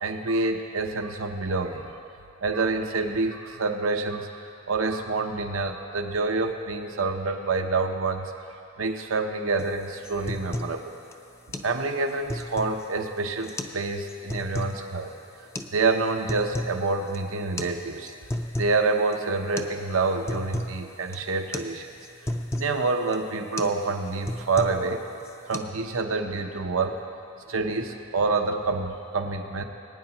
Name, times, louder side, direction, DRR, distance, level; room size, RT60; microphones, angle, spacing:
voice 1, 0.0-1.9 2.4-4.3 4.7-8.3 8.8-10.9 11.6-15.1 15.7-18.1 18.5-21.9 22.6-25.0 25.5-27.0 27.5-29.6, right 3 dB, 90° right, 5 dB, 0.8 m, -27 dB
sound 1, 9.6-9.7 10.0-10.8 11.1-11.2 11.5-11.7 12.1-12.9 13.4-13.8 14.1-14.8 15.5-15.7 16.1-16.8 17.1-17.2 17.6-17.7 18.1-18.8 19.1-19.2 19.6-19.8 20.0-20.8 21.1-21.3 21.5-21.7 22.0-22.7 23.1-23.3 23.6-23.8 24.1-24.9 25.2-25.6, left 1 dB, 15° left, 0.4 m, -33 dB
20.0 x 9.6 x 2.9 m, 2.6 s
head